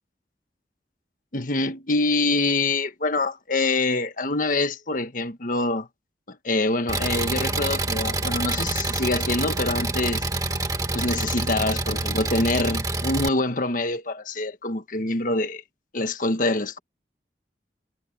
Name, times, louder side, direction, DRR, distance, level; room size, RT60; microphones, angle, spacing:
voice 1, 1.3-5.9 6.3-10.2 10.9-15.6 15.9-16.8, left 2 dB, 50° left, 1.4 m, -25 dB
Engine, 6.9-13.3, right 2 dB, 20° right, 1.8 m, -27 dB
head